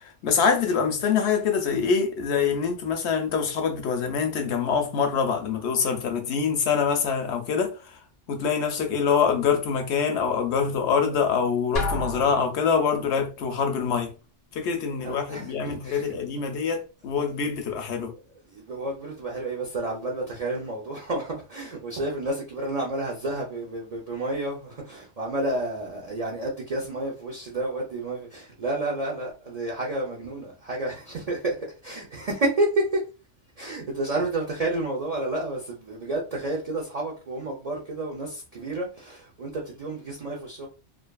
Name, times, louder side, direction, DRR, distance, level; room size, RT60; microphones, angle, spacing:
voice 1, 0.2-7.7 8.3-14.1 14.6-16.8 17.0-18.1, left 6 dB, 75° left, 0.9 m, -25 dB
Drum, 11.8-13.0, left 2 dB, 40° left, 0.6 m, -30 dB
voice 2, 15.0-16.2 18.3-33.0 33.6-40.7, right 2 dB, 45° right, 0.5 m, -30 dB
2.5 x 2.5 x 2.2 m
omnidirectional pair, 1.2 m